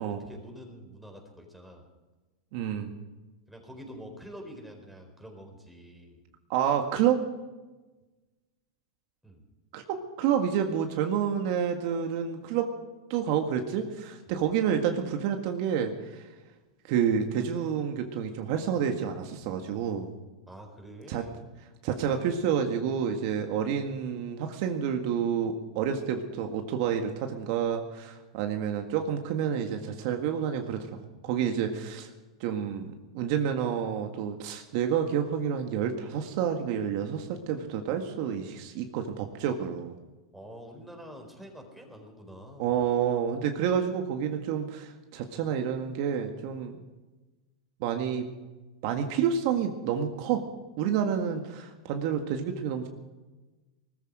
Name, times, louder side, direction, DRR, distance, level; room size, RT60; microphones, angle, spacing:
voice 1, 0.0-1.8 3.5-6.2 9.2-9.4 20.5-21.4 40.3-42.8, equal, ahead, 2 dB, 4.3 m, -46 dB
voice 2, 2.5-2.9 6.5-7.2 9.7-12.7 13.1-16.2 16.9-20.1 21.1-21.2 21.8-30.9 31.2-32.1 32.4-32.9 33.1-39.9 42.6-46.7 47.8-48.3 48.8-50.4 50.8-52.9, right 8 dB, 55° right, 4 dB, 1.8 m, -29 dB
20.0 x 14.0 x 5.0 m, 1.2 s
hypercardioid pair, 120°, 3 cm